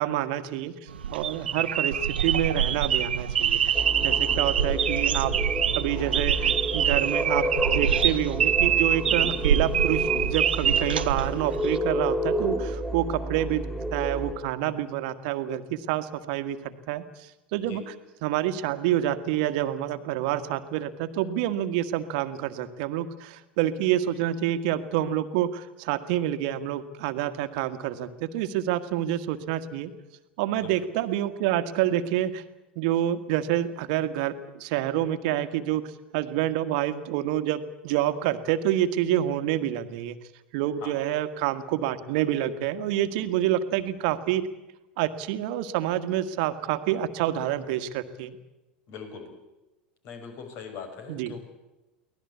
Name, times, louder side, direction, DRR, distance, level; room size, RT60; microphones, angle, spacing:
voice 1, 0.0-2.0 2.2-3.7 4.0-5.3 5.7-13.6 13.9-17.8 18.2-29.9 30.4-32.4 32.7-35.9 36.1-40.1 40.5-44.5 45.0-48.4 51.1-51.3, right 12 dB, 60° right, 11 dB, 1.7 m, -28 dB
sound 1, 0.9-11.8, right 8 dB, 80° right, 1.0 m, -25 dB
sound 2, 3.7-14.3, right 1 dB, 5° left, 4.8 m, -31 dB
voice 2, 4.1-4.4 17.6-17.8 30.5-30.9 40.8-40.9 48.9-49.3 50.0-51.4, left 5 dB, 50° left, 6 dB, 5.7 m, -41 dB
24.0 x 18.0 x 8.4 m, 1.0 s
hypercardioid pair, 85°, 5 cm